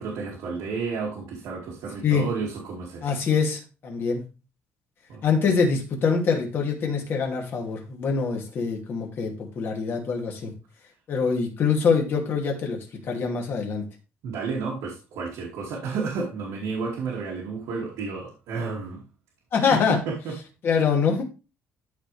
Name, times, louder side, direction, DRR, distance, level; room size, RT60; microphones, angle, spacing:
voice 1, 0.0-3.1 5.1-5.2 14.2-19.0 19.7-20.3, right 4 dB, 90° right, -3 dB, 2.5 m, -31 dB
voice 2, 3.0-4.2 5.2-10.5 11.1-13.8 19.5-20.0 20.6-21.2, left 5 dB, 45° left, 1 dB, 2.5 m, -24 dB
13.0 x 4.5 x 3.4 m, 0.31 s
cardioid pair, 165°, 5 cm